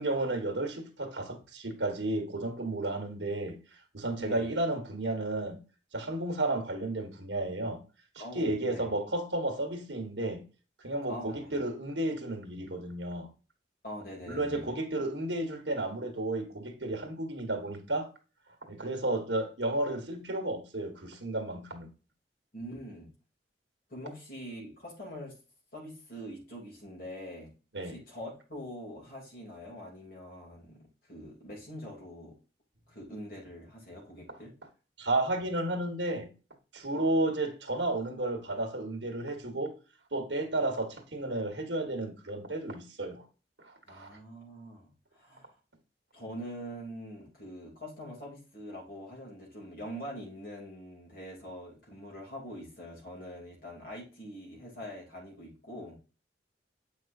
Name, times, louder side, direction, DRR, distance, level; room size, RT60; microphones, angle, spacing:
voice 1, 0.0-3.6 3.9-5.6 5.9-7.8 8.3-10.4 10.8-13.3 14.3-18.1 18.7-21.9 27.7-28.0 35.0-36.3 36.7-39.8 40.1-43.2 43.6-44.2, right 2 dB, 80° right, 1.7 m, -32 dB
voice 2, 8.2-8.9 11.1-11.6 13.8-14.7 22.5-23.1 23.9-25.3 25.7-27.5 27.8-32.4 32.9-34.5 43.9-45.5 46.1-56.0, equal, 55° left, 2.9 m, -44 dB
8.2 x 5.4 x 2.6 m
head